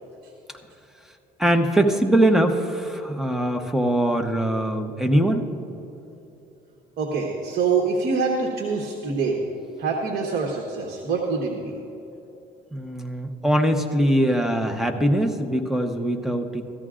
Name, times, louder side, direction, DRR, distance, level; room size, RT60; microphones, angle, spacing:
voice 1, 1.4-5.5 12.7-16.6, right 1 dB, ahead, 4 dB, 0.9 m, -22 dB
voice 2, 7.0-9.4 9.8-11.8, right 4 dB, 65° right, 0 dB, 1.3 m, -25 dB
16.5 x 13.5 x 2.5 m, 3.0 s
cardioid pair, 110°, 17 cm